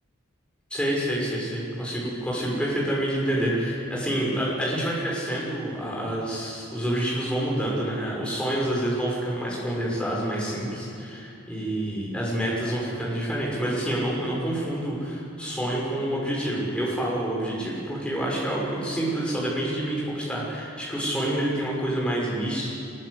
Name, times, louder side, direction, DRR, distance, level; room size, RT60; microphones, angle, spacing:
voice 1, 0.7-22.7, right 1 dB, 5° left, -5 dB, 6.1 m, -28 dB
22.0 x 21.5 x 8.2 m, 2.7 s
head